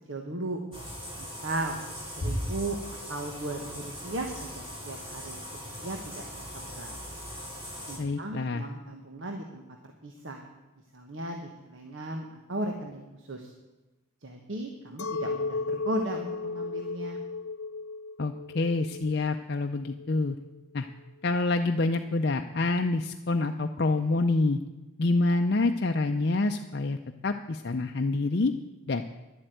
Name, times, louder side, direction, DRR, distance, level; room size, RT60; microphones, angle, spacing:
voice 1, 0.1-0.6 1.2-1.8 2.2-6.9 7.9-9.6 10.0-10.4 10.9-13.5 14.2-17.2, right 1 dB, 70° right, 3 dB, 1.3 m, -36 dB
sound 1, 0.7-8.0, equal, 25° right, 3.3 m, -38 dB
voice 2, 8.0-8.7 18.2-20.4 20.7-20.9 21.2-24.6 25.0-27.0 27.2-28.5 28.9-29.0, left 3 dB, 50° left, 5 dB, 0.5 m, -27 dB
Chink clink, 15.0-20.5, left 4 dB, 85° left, 0.8 m, -35 dB
11.5 x 7.8 x 9.2 m, 1.1 s
head